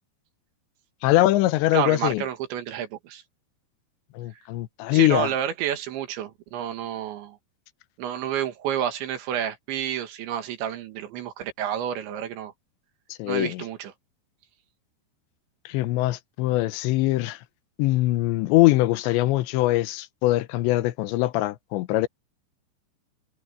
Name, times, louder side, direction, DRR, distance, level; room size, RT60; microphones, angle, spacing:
voice 1, 1.0-2.2 4.2-5.3 13.2-13.6 15.7-17.4 17.8-22.1, left 17 dB, 80° left, 3.1 m, -22 dB
voice 2, 1.7-3.2 4.9-7.4 8.0-12.5 13.3-13.9, right 10 dB, 85° right, 4.2 m, -30 dB
omnidirectional pair, 5.1 m